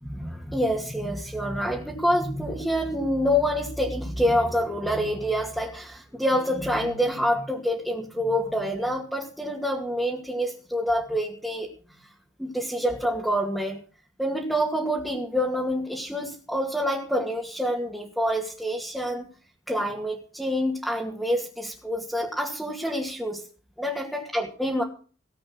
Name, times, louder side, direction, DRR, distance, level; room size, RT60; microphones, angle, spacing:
voice 1, 0.0-11.7 12.0-12.1 12.4-13.8 14.2-19.3 19.7-23.5 23.8-24.8, equal, ahead, -3 dB, 2.4 m, -27 dB
19.0 x 8.5 x 6.2 m, 0.39 s
head